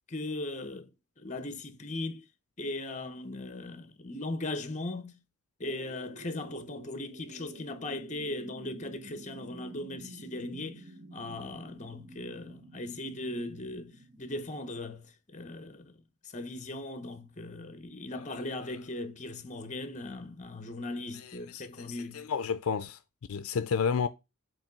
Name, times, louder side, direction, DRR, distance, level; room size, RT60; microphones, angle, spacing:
voice 1, 0.1-0.9 1.2-2.2 2.6-5.1 5.6-22.3, left 2 dB, 35° left, 0.9 m, -38 dB
sound 1, 5.6-14.2, right 3 dB, 70° right, 1.4 m, -49 dB
voice 2, 21.2-23.0 23.3-24.1, left 6 dB, 75° left, 0.4 m, -31 dB
7.3 x 3.1 x 5.2 m
head